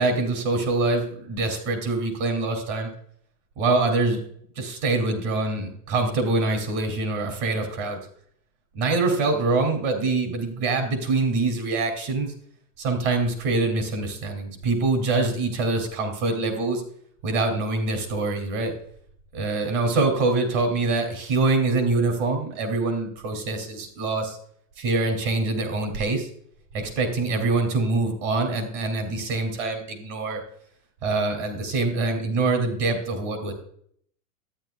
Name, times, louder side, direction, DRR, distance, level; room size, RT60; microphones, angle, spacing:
voice 1, 0.0-2.9 3.6-4.2 4.6-8.0 8.7-12.3 12.8-16.8 17.2-18.7 19.3-24.4 24.8-26.3 26.7-30.4 31.0-33.5, right 3 dB, 45° right, 5 dB, 2.8 m, -24 dB
13.5 x 9.9 x 2.3 m, 0.62 s
supercardioid pair, 155°, 47 cm